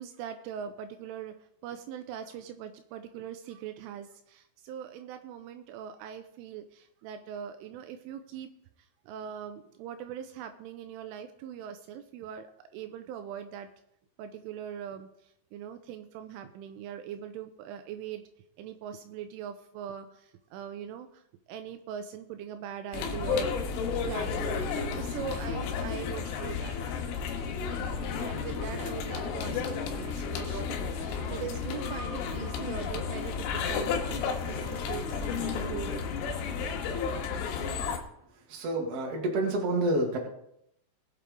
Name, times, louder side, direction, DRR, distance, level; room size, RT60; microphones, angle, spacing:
voice 1, 0.0-1.3 1.6-8.5 9.1-13.7 14.2-18.2 18.6-21.2 21.5-23.5 24.1-24.6 24.9-26.8 28.2-34.2 34.5-36.2, right 9 dB, 80° right, 8 dB, 3.1 m, -41 dB
sound 1, 22.9-38.0, left 5 dB, 90° left, 3.9 m, -32 dB
voice 2, 38.5-40.2, right 2 dB, 40° right, 0 dB, 2.3 m, -28 dB
19.5 x 8.1 x 3.7 m, 0.75 s
omnidirectional pair, 5.8 m